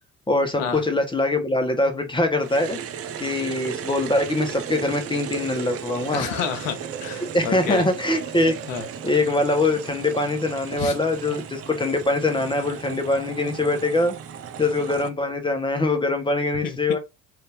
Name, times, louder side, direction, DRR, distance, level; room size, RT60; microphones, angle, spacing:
voice 1, 0.3-2.8 3.2-6.3 7.3-8.5 9.0-14.2 14.6-17.0, left 2 dB, 10° left, 1.1 m, -23 dB
sound 1, 2.4-15.1, right 8 dB, 35° right, 0.6 m, -35 dB
voice 2, 6.1-7.9 8.7-8.8 10.8-10.9 12.9-13.0 16.6-16.8, left 8 dB, 70° left, 0.8 m, -29 dB
3.3 x 2.7 x 3.4 m
figure-of-eight pair, 50°, 41 cm